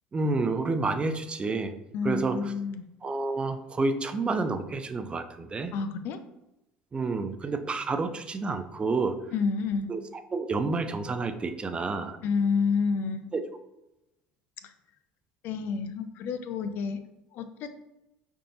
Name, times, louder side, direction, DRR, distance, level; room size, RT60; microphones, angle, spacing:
voice 1, 0.1-1.7 2.0-2.5 3.0-5.7 6.9-9.2 9.9-12.2 13.3-13.4, right 3 dB, 25° right, 9 dB, 0.5 m, -29 dB
voice 2, 1.9-2.9 5.7-6.2 9.3-9.9 12.2-13.3 15.4-17.0 17.3-17.7, left 5 dB, 55° left, 10 dB, 0.5 m, -29 dB
5.1 x 3.6 x 2.9 m, 0.92 s
hypercardioid pair, 75°, 4 cm